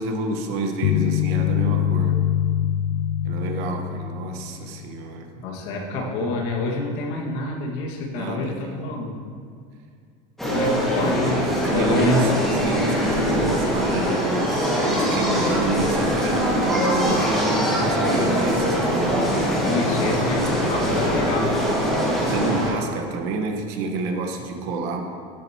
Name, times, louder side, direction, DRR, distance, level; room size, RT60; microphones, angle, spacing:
voice 1, 0.0-2.2 3.2-5.5 8.1-8.8 11.6-19.4 22.2-25.0, right 3 dB, 60° right, 4 dB, 1.3 m, -28 dB
sound 1, 0.8-5.0, left 11 dB, 85° left, 0.4 m, -24 dB
voice 2, 5.4-9.2 10.5-11.4 11.7-12.2 19.6-21.7 22.1-22.3, left 3 dB, 65° left, -1 dB, 1.9 m, -28 dB
sound 2, 10.4-22.7, equal, ahead, 2.0 m, -22 dB
14.0 x 10.0 x 3.0 m, 2.1 s
cardioid pair, 175°, 16 cm